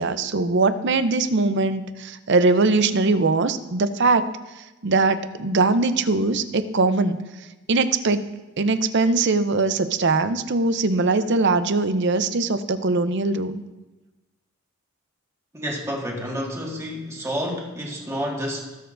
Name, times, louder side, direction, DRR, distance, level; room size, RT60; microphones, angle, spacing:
voice 1, 0.0-4.2 4.8-7.2 7.7-8.2 8.6-13.6, right 3 dB, 55° right, 11 dB, 0.6 m, -21 dB
voice 2, 15.5-18.8, equal, 15° right, -1 dB, 1.6 m, -29 dB
19.5 x 6.9 x 2.5 m, 1.1 s
head